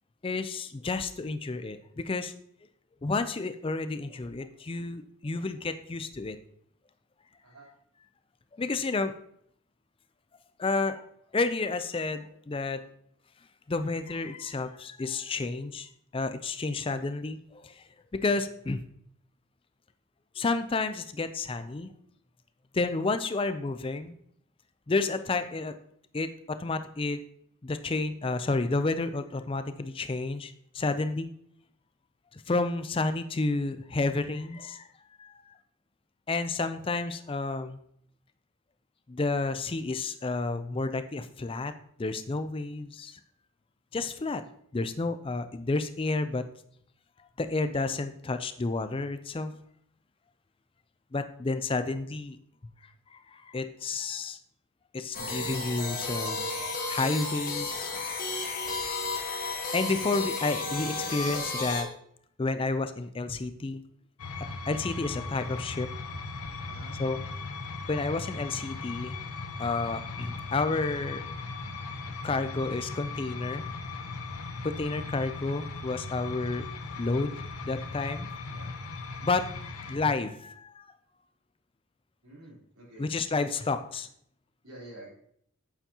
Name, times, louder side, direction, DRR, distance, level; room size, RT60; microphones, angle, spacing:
voice 1, 0.2-2.3 3.0-6.4 8.6-9.1 10.6-11.1 11.3-12.8 13.7-17.8 18.1-18.8 20.4-21.9 22.7-24.1 24.9-25.7 26.1-27.2 27.6-31.3 32.3-34.9 35.2-35.5 36.3-37.8 39.1-41.7 42.0-43.2 43.9-44.4 44.7-46.4 47.4-49.5 51.1-52.4 53.1-54.4 54.9-56.5 56.9-57.9 59.7-61.9 62.4-63.8 64.7-65.9 67.0-67.2 67.9-69.2 69.6-71.2 72.2-73.6 74.6-76.7 77.0-77.3 77.6-78.3 79.2-80.8 83.0-84.1, left 3 dB, 25° left, 10 dB, 0.4 m, -30 dB
sound 1, 55.1-61.8, left 3 dB, 40° left, 1.4 m, -33 dB
sound 2, 64.2-80.0, left 3 dB, 85° left, 0.8 m, -38 dB
voice 2, 82.2-83.1 84.6-85.1, right 1 dB, 80° right, -5 dB, 3.7 m, -48 dB
8.9 x 7.2 x 2.9 m, 0.69 s
head